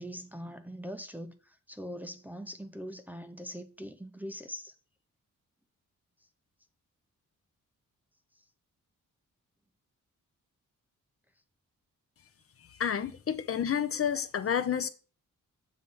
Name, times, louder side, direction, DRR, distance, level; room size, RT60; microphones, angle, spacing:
voice 1, 0.0-4.7, equal, 5° right, 0.5 m, -42 dB
voice 2, 12.8-14.9, left 8 dB, 45° left, 0.5 m, -30 dB
7.6 x 3.2 x 5.4 m
wide cardioid pair, 135°, 32 cm